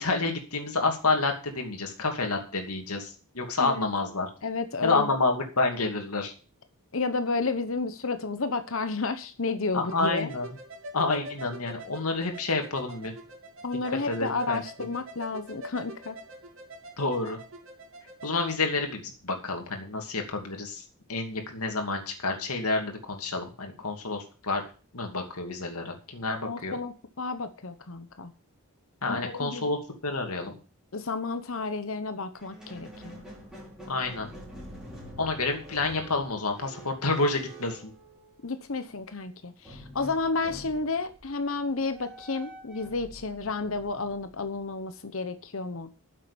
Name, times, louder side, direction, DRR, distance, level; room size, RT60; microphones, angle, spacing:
voice 1, 0.0-4.3 4.8-6.3 9.7-10.5 10.9-13.1 14.1-14.6 17.0-17.4 18.2-20.8 21.1-24.6 24.9-26.7 29.0-30.5 33.9-34.3 35.2-37.9, left 3 dB, 85° left, 3 dB, 2.6 m, -29 dB
voice 2, 4.4-5.1 6.9-10.3 13.6-16.2 26.4-28.3 29.0-29.7 30.9-33.2 38.4-45.9, left 3 dB, 65° left, 10 dB, 1.0 m, -31 dB
sound 1, 9.9-18.6, right 1 dB, 60° right, 3.1 m, -45 dB
Squeak, 32.3-38.7 39.6-44.8, equal, 5° right, 4.9 m, -47 dB
9.7 x 7.5 x 8.5 m, 0.37 s
head